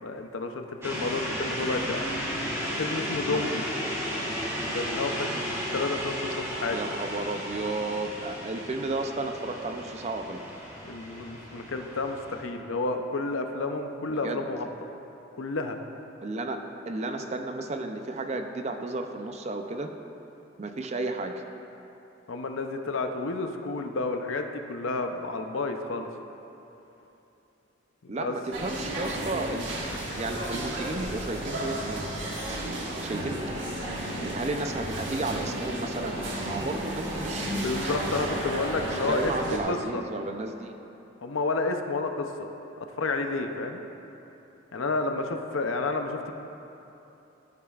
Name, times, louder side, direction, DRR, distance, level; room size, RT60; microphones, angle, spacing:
voice 1, 0.0-2.1 2.8-3.6 4.7-7.0 10.8-14.7 15.4-15.8 22.3-26.1 28.1-28.3 33.3-33.4 37.5-40.0 41.2-42.5 42.8-43.8 44.7-46.3, left 3 dB, 80° left, 5 dB, 0.6 m, -31 dB
sound 1, 0.8-12.4, equal, 15° right, 1.6 m, -34 dB
voice 2, 6.7-10.4 14.2-14.4 16.2-16.6 16.9-19.9 20.6-21.3 28.1-29.7 30.2-33.4 34.2-38.2 39.1-40.7, right 2 dB, 35° right, 5 dB, 0.4 m, -33 dB
sound 2, 28.5-39.6, right 1 dB, 65° right, 1.4 m, -33 dB
13.5 x 9.3 x 2.4 m, 3.0 s
head